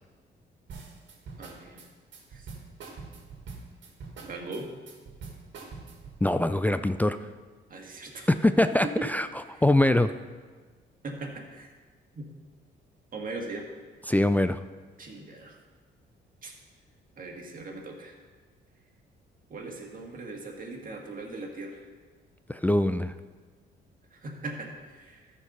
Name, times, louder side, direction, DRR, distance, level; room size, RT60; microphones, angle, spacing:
sound 1, 0.7-6.2, right 4 dB, 70° right, 1.9 m, -44 dB
voice 1, 1.4-1.9 2.3-2.5 4.2-4.7 7.7-8.3 9.0-9.1 9.5-9.6 11.0-11.7 12.2-12.3 13.1-13.7 15.0-15.6 16.4-16.5 17.2-18.1 19.5-21.9 24.1-25.3, right 3 dB, 45° right, 0 dB, 1.9 m, -40 dB
voice 2, 6.2-7.2 8.4-9.3 9.6-10.1 14.1-14.6 22.5-23.1, left 1 dB, 10° left, 10 dB, 0.3 m, -23 dB
13.5 x 4.6 x 5.5 m, 1.4 s
cardioid pair, 90°, 20 cm